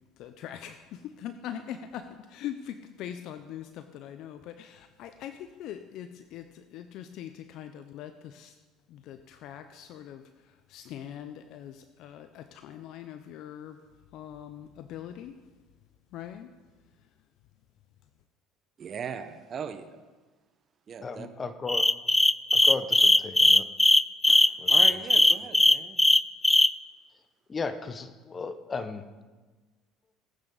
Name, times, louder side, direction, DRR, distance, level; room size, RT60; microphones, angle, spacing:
voice 1, 0.2-8.5 8.9-10.2 10.7-13.8 14.1-15.4 16.1-16.5, left 10 dB, 65° left, 10 dB, 0.7 m, -42 dB
voice 2, 18.8-20.0 20.9-21.3 24.3-26.0, right 7 dB, 45° right, 8 dB, 1.0 m, -39 dB
voice 3, 21.0-21.9 22.5-23.7 24.6-24.9 27.5-29.1, left 4 dB, 30° left, 10 dB, 1.1 m, -35 dB
sound 1, 21.7-26.7, left 2 dB, 10° left, 0.4 m, -19 dB
19.5 x 9.0 x 4.0 m, 1.3 s
hypercardioid pair, 75°, 0 cm